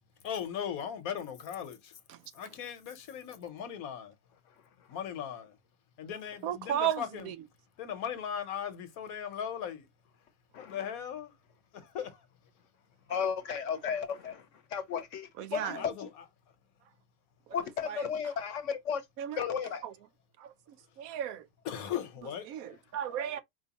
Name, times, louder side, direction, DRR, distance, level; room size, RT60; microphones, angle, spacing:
voice 1, 0.2-1.9 2.3-4.1 4.9-5.5 6.0-7.3 7.8-9.9 10.6-11.3 11.7-12.2 15.6-16.1 21.6-22.5, left 8 dB, 85° left, 1.4 m, -38 dB
voice 2, 6.4-7.3 15.4-15.8 17.8-18.0 19.2-19.4 19.8-19.9 20.4-20.5 21.0-21.5 22.5-23.4, right 10 dB, 85° right, 1.0 m, -34 dB
voice 3, 13.1-14.5 14.7-16.1 17.5-19.0 19.4-19.8 23.2-23.3, left 7 dB, 65° left, 1.0 m, -34 dB
4.6 x 3.0 x 2.9 m
omnidirectional pair, 1.5 m